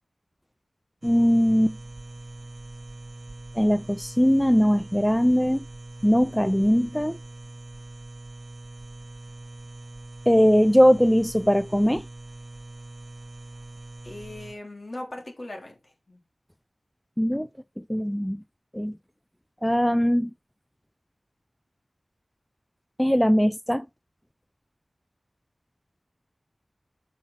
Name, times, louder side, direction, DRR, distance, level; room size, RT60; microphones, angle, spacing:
voice 1, 1.0-1.8 3.6-5.6 6.0-7.2 10.3-12.0 17.2-17.5 17.9-18.4 18.7-19.0 19.6-20.3 23.0-23.8, equal, 5° left, 0.4 m, -20 dB
sound 1, 1.0-14.5, right 2 dB, 70° right, 0.9 m, -42 dB
voice 2, 14.0-16.2, left 1 dB, 50° left, 3.1 m, -39 dB
6.8 x 6.2 x 4.1 m
wide cardioid pair, 55°, 0 cm